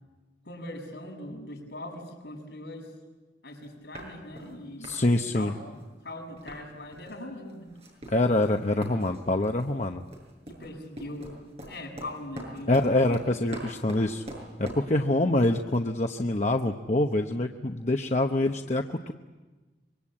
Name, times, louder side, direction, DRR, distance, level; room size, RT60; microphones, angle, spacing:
voice 1, 0.4-2.9 3.4-7.7 10.5-11.3 11.7-13.1, left 1 dB, 70° left, 1 dB, 7.1 m, -41 dB
sound 1, 3.6-3.7 3.9-4.5 4.8-5.0 5.3-6.6 6.9-7.2 7.5-14.9, right 1 dB, 35° right, 7.1 m, -43 dB
voice 2, 4.8-5.5 8.1-10.0 12.7-14.2 14.6-19.1, left 2 dB, 40° left, 4 dB, 0.9 m, -25 dB
25.5 x 23.5 x 8.7 m, 1.2 s
head